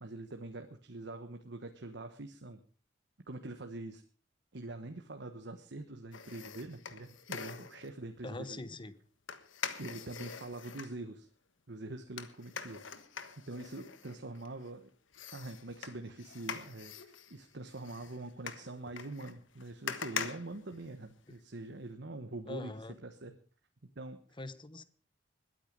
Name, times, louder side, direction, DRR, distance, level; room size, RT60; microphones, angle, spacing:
voice 1, 0.0-2.6 3.3-4.0 4.5-8.6 9.8-11.3 11.7-12.8 13.4-14.9 15.3-22.7 23.0-23.3 23.9-24.2, right 2 dB, 65° right, 6 dB, 1.2 m, -44 dB
sound 1, 6.1-7.9 9.3-10.9 12.2-14.7 15.1-21.4 21.7-21.8, left 6 dB, 90° left, 1.4 m, -44 dB
voice 2, 8.2-8.9 22.5-23.0 24.4-24.8, left 2 dB, 25° left, 14 dB, 1.0 m, -43 dB
21.0 x 9.3 x 5.2 m, 0.40 s
head